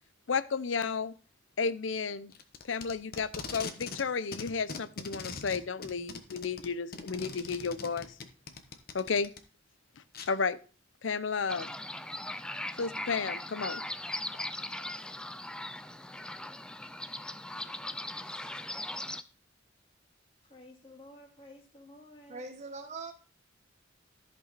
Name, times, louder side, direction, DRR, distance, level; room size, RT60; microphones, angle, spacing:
voice 1, 0.3-1.1 1.6-2.3 2.6-8.2 8.9-9.3 10.0-10.6 11.0-11.7 12.8-13.8, left 5 dB, 70° left, 0.6 m, -32 dB
Packing tape duct tape, 2.3-4.1 4.3-9.4 10.1-10.3, left 4 dB, 50° left, 1.1 m, -41 dB
sound 1, 11.5-19.2, left 1 dB, 5° left, 0.4 m, -39 dB
voice 2, 20.4-22.4, left 1 dB, 30° left, 2.3 m, -53 dB
voice 3, 22.3-23.1, right 3 dB, 35° right, 1.1 m, -41 dB
14.0 x 5.5 x 4.0 m
head